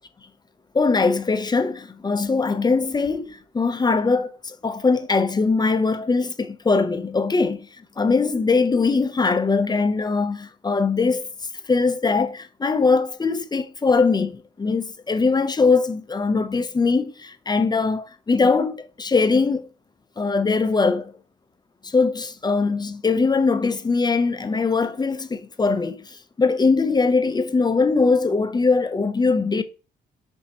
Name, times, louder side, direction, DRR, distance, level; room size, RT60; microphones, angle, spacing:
voice 1, 0.7-7.7 8.0-11.2 11.7-19.7 20.2-21.1 21.8-29.6, left 4 dB, 20° left, 0.5 m, -21 dB
5.7 x 2.7 x 2.8 m
supercardioid pair, 60°, 19 cm